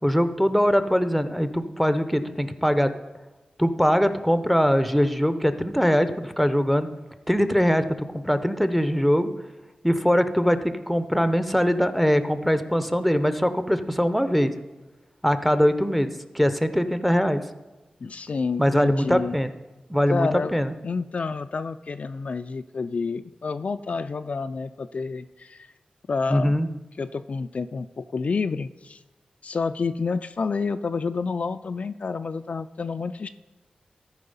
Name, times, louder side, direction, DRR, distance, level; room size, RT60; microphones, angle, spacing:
voice 1, 0.0-2.9 3.6-6.9 7.3-7.9 8.2-9.3 9.8-14.5 15.2-17.4 18.6-19.5 19.9-20.7 26.3-26.7, equal, ahead, 10 dB, 0.7 m, -22 dB
voice 2, 18.0-19.4 20.1-25.7 26.1-26.6 27.0-29.0 29.4-33.3, left 4 dB, 55° left, 10 dB, 0.3 m, -29 dB
13.5 x 4.8 x 5.4 m, 1.1 s
cardioid pair, 65°, 3 cm